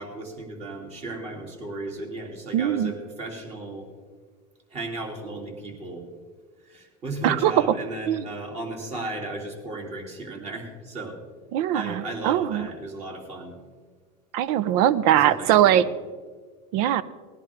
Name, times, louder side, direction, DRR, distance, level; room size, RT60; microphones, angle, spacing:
voice 1, 0.0-3.8 4.7-6.1 6.6-11.2 11.7-13.6 15.0-15.9, right 2 dB, 35° right, 1 dB, 3.2 m, -35 dB
voice 2, 2.5-2.9 7.2-7.5 8.1-8.2 11.5-12.7 14.3-15.9 16.7-17.0, right 11 dB, 70° right, 17 dB, 0.7 m, -21 dB
18.5 x 11.0 x 3.6 m, 1.5 s
supercardioid pair, 115°, 19 cm